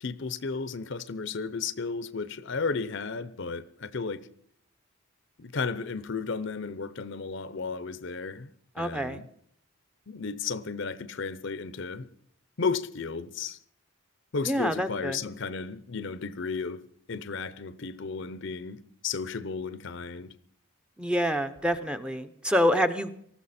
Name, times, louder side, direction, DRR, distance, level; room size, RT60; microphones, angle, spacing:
voice 1, 0.0-4.2 5.4-8.5 8.8-9.3 10.1-12.1 12.6-13.6 14.3-16.8 17.1-20.3, left 4 dB, 55° left, 0.7 m, -33 dB
voice 2, 8.8-9.2 14.4-15.2 21.0-23.1, equal, 5° right, 0.7 m, -27 dB
19.5 x 14.0 x 4.3 m
head